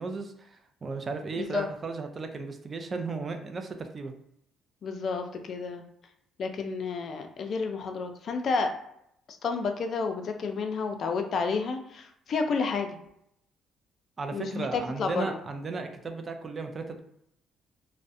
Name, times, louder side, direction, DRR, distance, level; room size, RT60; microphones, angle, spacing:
voice 1, 0.0-4.1 14.2-17.0, right 4 dB, 35° right, 5 dB, 0.4 m, -35 dB
voice 2, 1.4-1.7 4.8-5.8 6.4-8.7 9.3-13.0 14.3-15.4, left 4 dB, 55° left, 5 dB, 0.4 m, -30 dB
2.3 x 2.0 x 2.6 m, 0.74 s
cardioid pair, 90°, 0 cm